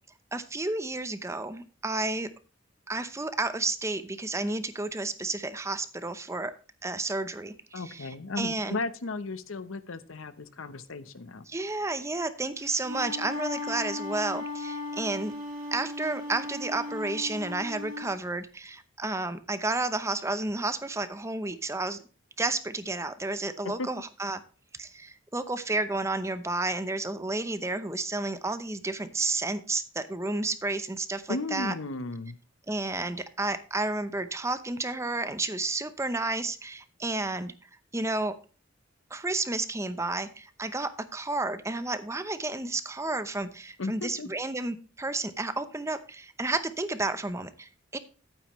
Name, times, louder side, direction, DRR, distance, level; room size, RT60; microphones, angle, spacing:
voice 1, 0.3-2.3 2.9-6.5 6.8-8.8 11.5-15.3 15.7-22.0 22.4-24.4 24.8-31.7 32.7-37.5 37.9-38.3 39.1-48.0, right 2 dB, 15° right, 12 dB, 0.7 m, -31 dB
voice 2, 7.7-11.5 23.6-23.9 31.3-32.4 43.8-44.3, left 3 dB, 90° left, 13 dB, 0.9 m, -35 dB
Wind instrument woodwind instrument, 12.6-18.1, left 2 dB, 45° right, 3.0 m, -37 dB
11.5 x 9.2 x 3.1 m, 0.36 s
head